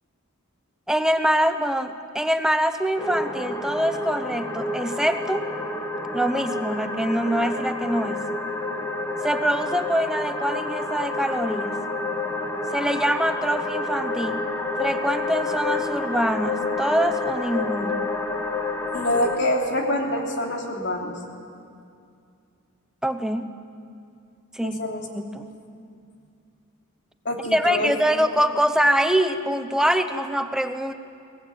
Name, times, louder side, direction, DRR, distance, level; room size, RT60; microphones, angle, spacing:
voice 1, 0.9-5.5 6.1-8.2 9.2-11.8 12.7-14.4 14.8-18.1 23.0-23.5 24.5-24.8 25.1-25.4 27.5-30.9, equal, 5° right, 9 dB, 0.9 m, -24 dB
sound 1, 3.0-19.4, left 2 dB, 15° left, 1.6 m, -29 dB
voice 2, 18.9-21.2 24.6-25.1 25.4-25.5 27.2-27.9, left 1 dB, 60° left, 1 dB, 3.1 m, -26 dB
23.0 x 19.0 x 8.9 m, 2.4 s
head